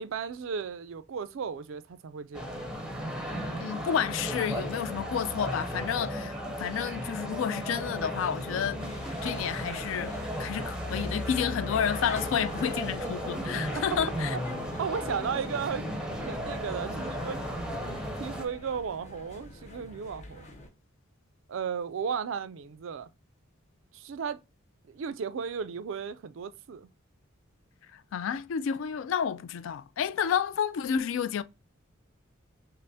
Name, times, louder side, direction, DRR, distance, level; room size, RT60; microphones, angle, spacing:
voice 1, 0.0-2.5 14.3-15.9 16.2-17.4 17.8-20.5 21.5-23.1 23.9-24.4 24.9-26.9, right 6 dB, 65° right, 0.4 m, -35 dB
sound 1, 2.3-18.4, equal, 5° right, 0.6 m, -35 dB
voice 2, 3.6-8.8 9.2-14.4 27.9-31.4, left 8 dB, 65° left, 0.3 m, -30 dB
sound 2, 8.8-20.7, left 2 dB, 35° left, 0.8 m, -45 dB
5.3 x 2.0 x 2.6 m
head